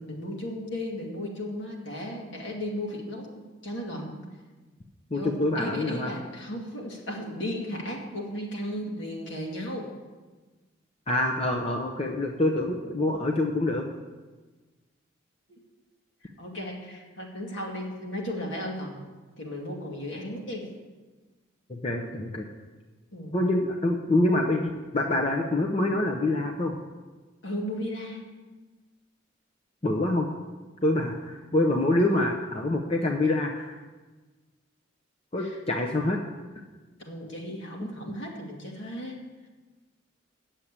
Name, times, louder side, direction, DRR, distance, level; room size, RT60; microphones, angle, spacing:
voice 1, 0.0-4.3 5.1-9.9 15.5-15.6 16.4-19.0 19.4-20.7 23.1-23.3 27.4-28.2 35.4-35.6 37.0-39.2, left 1 dB, 70° left, -1 dB, 2.2 m, -35 dB
voice 2, 5.1-6.1 11.1-13.9 21.7-22.4 23.3-26.7 29.8-30.3 30.8-33.8 35.3-36.2, left 2 dB, 30° left, 1 dB, 0.7 m, -26 dB
8.3 x 7.2 x 8.7 m, 1.3 s
head